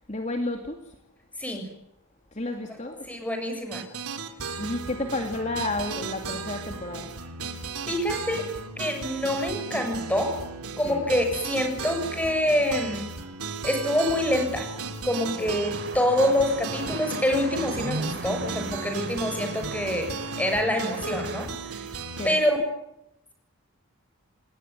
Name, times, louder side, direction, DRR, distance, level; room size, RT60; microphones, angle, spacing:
voice 1, 0.1-0.9 2.3-3.1 4.3-7.2 10.8-11.1 15.4-15.5 22.1-22.4, left 2 dB, 30° left, 4 dB, 2.6 m, -32 dB
voice 2, 3.0-3.8 7.9-8.5 8.8-10.4 10.8-13.1 13.6-14.7 15.0-21.8 22.2-22.6, left 1 dB, 5° left, 5 dB, 7.0 m, -26 dB
sound 1, 3.7-22.3, right 4 dB, 85° right, 3.8 m, -35 dB
sound 2, 15.4-21.5, right 2 dB, 45° right, 4.5 m, -37 dB
29.0 x 21.0 x 9.6 m, 0.83 s
head